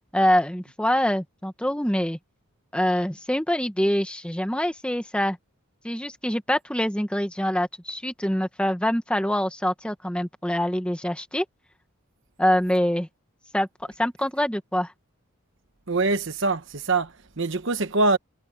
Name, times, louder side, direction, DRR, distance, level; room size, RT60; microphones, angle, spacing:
voice 1, 0.1-2.2 2.7-5.4 5.8-11.4 12.4-13.1 13.5-13.7 14.0-14.9, equal, 5° left, 1.4 m, -25 dB
voice 2, 15.9-18.2, right 3 dB, 60° right, 1.1 m, -24 dB
head